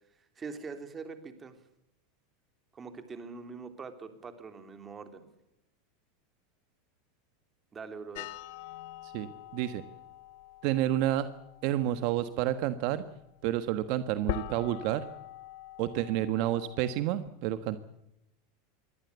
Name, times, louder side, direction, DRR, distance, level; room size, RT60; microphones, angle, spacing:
voice 1, 0.4-1.5 2.7-5.3 7.7-8.4, right 4 dB, 20° right, 8 dB, 3.3 m, -43 dB
sound 1, 8.1-17.0, left 15 dB, 65° left, 1.4 m, -44 dB
voice 2, 9.5-9.8 10.6-11.3 11.6-13.0 13.4-15.0 15.8-17.8, right 13 dB, 55° right, 11 dB, 1.4 m, -29 dB
23.5 x 17.0 x 8.2 m, 0.84 s
supercardioid pair, 135°, 0 cm